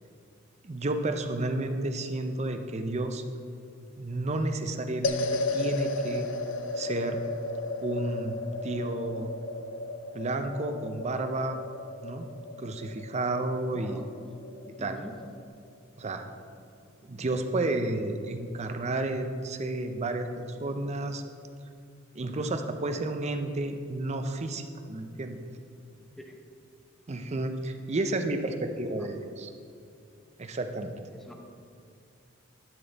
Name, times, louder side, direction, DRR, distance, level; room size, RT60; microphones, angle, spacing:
voice 1, 0.6-3.2 4.0-6.3 6.7-7.2 7.8-9.3 10.1-11.6 12.0-12.3 12.6-14.0 14.8-15.0 16.0-16.2 17.1-21.2 22.1-25.4 27.1-29.5 30.4-30.9, right 2 dB, 35° right, 7 dB, 0.5 m, -31 dB
sound 1, 5.0-15.5, left 2 dB, 65° left, 0.5 m, -35 dB
voice 2, 13.7-14.3 14.8-15.2 17.1-17.3 26.2-26.4 31.1-31.3, equal, ahead, 2 dB, 0.7 m, -46 dB
11.0 x 6.1 x 4.0 m, 2.5 s
head